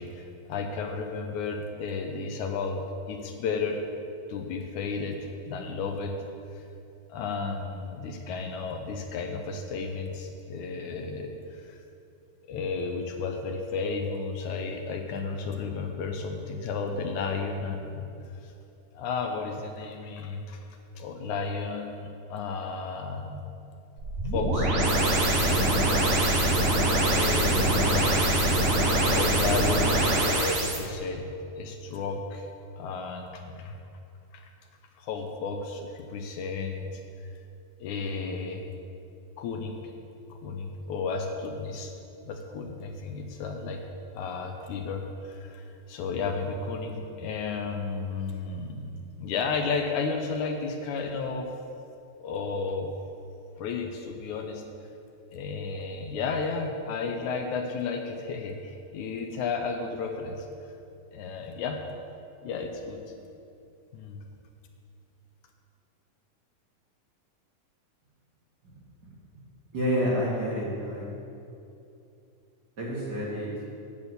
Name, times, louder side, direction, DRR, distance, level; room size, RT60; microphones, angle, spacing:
voice 1, 0.0-2.8 3.1-3.8 4.3-5.2 5.4-6.2 6.5-6.6 7.1-11.8 12.5-18.0 18.4-18.5 18.9-20.6 21.0-23.4 24.3-24.7 25.4-26.7 27.1-28.5 29.0-32.5 32.8-33.7 34.3-34.5 35.0-37.0 37.8-38.7 39.4-39.9 40.3-41.9 42.3-43.8 44.1-51.5 52.2-52.9 53.6-54.6 55.3-60.5 61.1-61.8 62.4-63.0 63.9-64.2, left 4 dB, 75° left, 4 dB, 2.1 m, -33 dB
sound 1, 24.0-30.8, right 1 dB, 75° right, 0.7 m, -23 dB
voice 2, 69.7-71.1 72.8-73.5, equal, 35° right, -6 dB, 2.1 m, -29 dB
9.9 x 6.2 x 8.1 m, 2.7 s
omnidirectional pair, 3.6 m